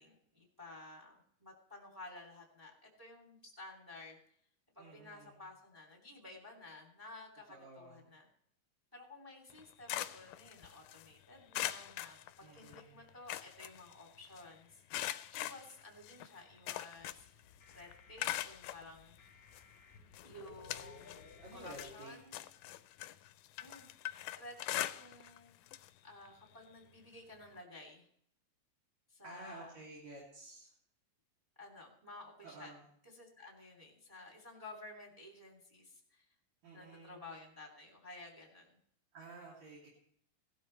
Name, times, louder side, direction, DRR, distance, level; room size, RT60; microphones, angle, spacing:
voice 1, 0.0-4.2 4.7-8.3 8.9-19.2 20.2-22.4 23.6-23.9 24.3-25.5 26.0-28.1 29.1-29.8 31.6-32.8 33.0-36.2 36.7-38.8, left 2 dB, 5° right, 0 dB, 2.1 m, -53 dB
voice 2, 4.8-5.4 7.5-8.1 12.4-13.1 21.4-22.1 29.2-30.7 32.4-32.9 36.6-37.2 39.1-39.9, right 2 dB, 60° right, -5 dB, 4.0 m, -52 dB
sound 1, 9.5-11.1 11.5-12.8 13.1-14.4 14.9-17.4 17.7-18.8 19.5-19.6 20.1-21.3 21.6-25.4 25.7-25.9 26.3-26.4 27.6-27.7, left 14 dB, 80° left, 2.1 m, -42 dB
sound 2, 17.0-21.9, left 4 dB, 45° left, 1.2 m, -58 dB
17.5 x 12.5 x 3.2 m, 0.66 s
omnidirectional pair, 3.7 m